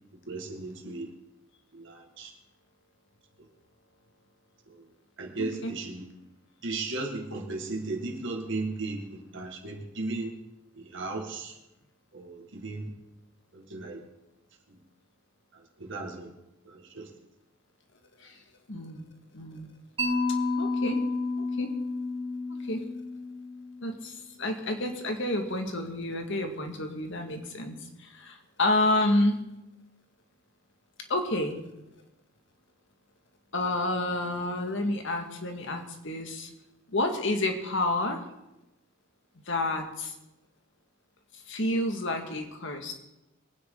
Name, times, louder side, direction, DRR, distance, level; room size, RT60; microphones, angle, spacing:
voice 1, 0.3-1.1 1.7-2.3 4.7-4.8 5.2-6.1 6.6-10.3 10.8-11.5 12.1-12.9 13.5-14.0 15.8-16.3 16.7-17.1, right 3 dB, 60° right, 2 dB, 2.0 m, -35 dB
voice 2, 5.4-5.7 18.2-18.4 18.7-19.1 19.3-19.7 20.6-21.0 21.4-21.7 22.7-22.8 23.8-29.4 31.1-31.6 33.5-36.5 36.9-38.2 39.5-40.1 41.5-42.9, left 1 dB, 65° left, 4 dB, 1.9 m, -29 dB
Mallet percussion, 20.0-24.0, left 3 dB, 25° right, 3.3 m, -31 dB
23.0 x 9.7 x 3.9 m, 0.93 s
head